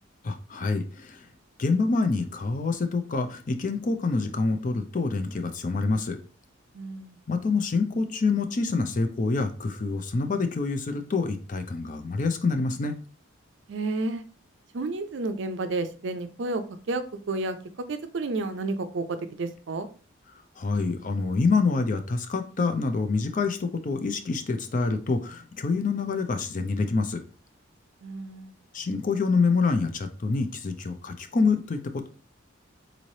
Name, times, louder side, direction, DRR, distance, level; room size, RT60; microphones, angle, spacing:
voice 1, 0.2-1.3 1.6-6.2 7.3-13.0 20.6-27.2 28.7-32.1, left 4 dB, 40° left, 7 dB, 0.4 m, -26 dB
voice 2, 6.7-7.2 13.7-14.2 14.7-16.6 16.9-19.9 28.0-28.5, right 2 dB, 60° right, 9 dB, 0.5 m, -31 dB
3.9 x 3.1 x 2.7 m, 0.38 s
head